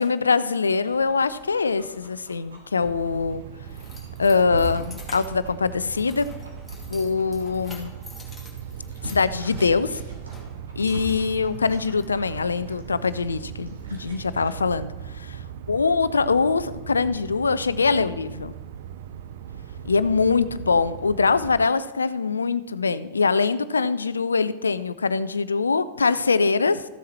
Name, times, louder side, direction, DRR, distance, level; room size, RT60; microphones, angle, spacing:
voice 1, 0.0-3.4 4.2-6.3 6.9-7.9 9.0-10.0 10.8-15.4 15.7-18.5 19.8-26.9, left 4 dB, 75° left, 16 dB, 0.4 m, -23 dB
Dog, 0.7-14.5, right 1 dB, 70° right, 2.6 m, -42 dB
sound 1, 2.8-21.7, right 10 dB, 55° right, 0.4 m, -39 dB
Keys jangling, 3.1-12.0, left 3 dB, 5° left, 2.5 m, -48 dB
14.0 x 7.1 x 4.3 m, 1.1 s
figure-of-eight pair, 90°, 0 cm